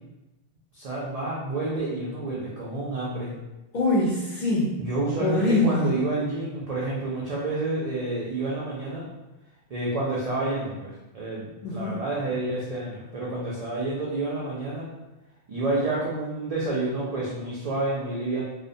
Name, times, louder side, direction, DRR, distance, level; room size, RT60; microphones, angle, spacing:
voice 1, 0.7-3.3 4.8-9.0 9.7-14.8 15.5-18.4, right 2 dB, 70° right, -6 dB, 0.3 m, -29 dB
voice 2, 3.7-4.8 5.2-6.0 11.6-12.0, left 1 dB, 60° left, -6 dB, 0.5 m, -24 dB
2.4 x 2.1 x 2.6 m, 1.0 s
omnidirectional pair, 1.2 m